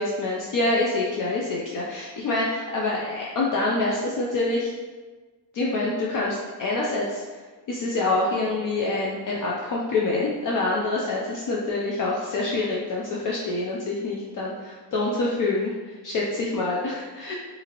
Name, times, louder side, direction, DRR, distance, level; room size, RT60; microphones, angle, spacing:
voice 1, 0.0-4.7 5.5-7.2 7.7-17.3, left 2 dB, 55° left, -4 dB, 0.4 m, -26 dB
2.7 x 2.5 x 2.8 m, 1.3 s
wide cardioid pair, 165°, 40 cm